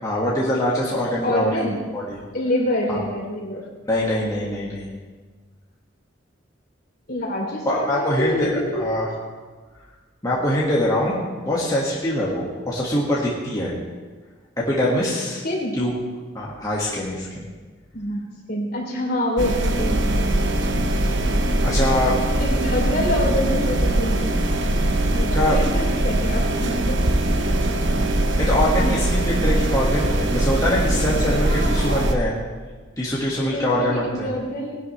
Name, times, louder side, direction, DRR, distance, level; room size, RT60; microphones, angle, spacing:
voice 1, 0.0-2.2 2.9-3.0 3.9-4.9 7.6-9.1 10.2-13.7 14.6-15.4 15.8-15.9 16.3-17.5 21.6-22.1 25.3-25.6 27.9-28.0 28.4-32.3 33.0-34.3, left 1 dB, 20° left, -6 dB, 1.9 m, -23 dB
voice 2, 1.2-1.8 2.3-3.6 7.1-9.0 15.4-15.8 17.9-20.1 22.4-24.4 24.8-27.1 31.4-32.1 33.4-34.8, left 1 dB, 50° left, -1 dB, 3.2 m, -26 dB
sound 1, 19.4-32.1, right 1 dB, 65° right, 1.0 m, -21 dB
19.5 x 12.0 x 3.3 m, 1.4 s
head